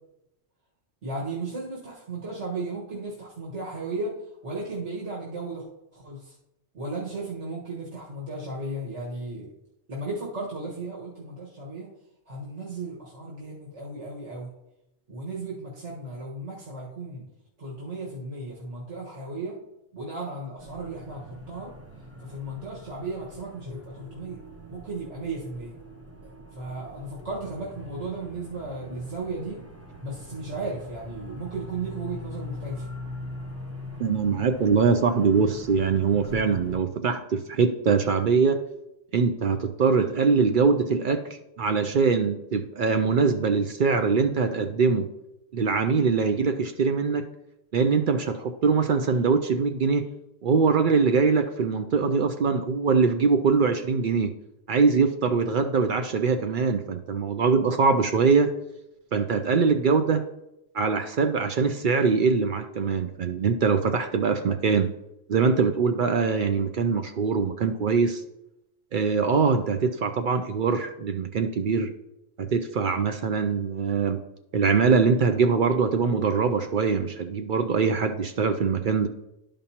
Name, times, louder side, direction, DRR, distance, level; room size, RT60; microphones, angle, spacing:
voice 1, 1.0-4.1 4.4-5.6 5.9-6.4 6.7-9.5 9.9-11.9 12.3-14.5 15.1-17.3 17.6-19.6 19.9-21.7 22.2-24.4 24.7-25.7 26.5-29.6 30.0-32.9, right 2 dB, 90° right, -5 dB, 1.8 m, -35 dB
sound 1, 20.6-36.8, equal, 15° right, 0.9 m, -42 dB
voice 2, 34.0-38.6 39.1-45.1 45.5-47.3 47.7-50.1 50.4-54.3 54.7-58.5 59.1-60.2 60.7-64.9 65.3-68.2 68.9-71.9 72.4-74.2 74.5-79.1, right 5 dB, 60° right, 8 dB, 0.6 m, -23 dB
12.5 x 5.2 x 2.9 m, 0.87 s
omnidirectional pair, 1.2 m